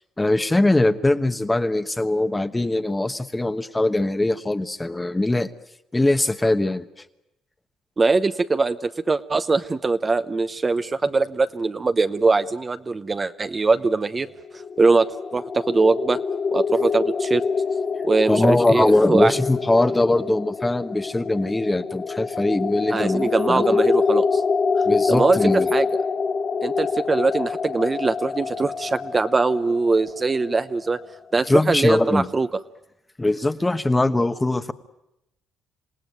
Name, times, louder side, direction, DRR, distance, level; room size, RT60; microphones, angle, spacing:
voice 1, 0.2-5.5 5.9-7.0 18.3-23.7 24.8-25.7 31.5-32.3 33.2-34.7, left 2 dB, 15° left, 11 dB, 1.2 m, -21 dB
voice 2, 8.0-14.3 14.8-16.2 16.5-17.4 18.0-19.3 22.9-24.4 25.1-25.4 25.7-25.9 26.6-31.0 31.3-32.5, right 3 dB, 30° right, 11 dB, 0.9 m, -22 dB
sound 1, 14.3-31.2, left 5 dB, 40° left, 1.1 m, -26 dB
27.0 x 17.5 x 9.4 m, 0.88 s
cardioid pair, 85°, 0 cm